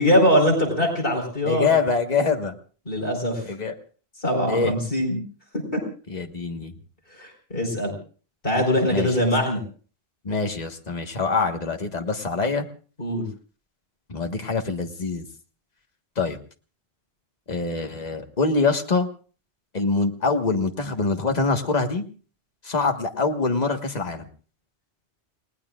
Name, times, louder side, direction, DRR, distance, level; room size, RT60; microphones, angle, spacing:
voice 1, 0.0-1.7 2.9-3.4 4.2-5.2 5.7-5.8 7.2-8.0 8.4-9.6 13.0-13.3, equal, 60° left, 2 dB, 4.8 m, -22 dB
voice 2, 1.5-2.5 3.4-3.7 4.5-4.7 6.1-6.7 8.9-9.1 10.2-12.7 14.1-15.2 16.2-16.4 17.5-19.1 19.7-22.0 22.6-24.3, left 4 dB, 40° left, 4 dB, 1.6 m, -24 dB
30.0 x 19.0 x 2.4 m, 0.39 s
omnidirectional pair, 1.0 m